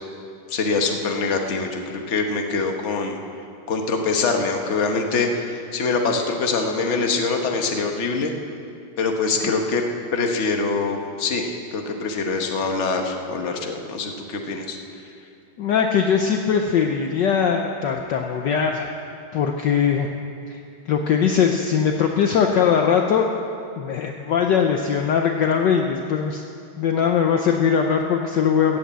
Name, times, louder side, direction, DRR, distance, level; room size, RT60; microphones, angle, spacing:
voice 1, 0.5-3.2 3.7-8.3 9.0-9.8 10.1-14.8, left 4 dB, 40° left, 3 dB, 1.3 m, -24 dB
voice 2, 15.6-18.9 19.3-20.1 20.5-20.6 20.9-23.3 23.8-26.4 26.8-28.8, left 7 dB, 65° left, 3 dB, 1.2 m, -20 dB
14.5 x 8.7 x 8.1 m, 2.5 s
omnidirectional pair, 2.3 m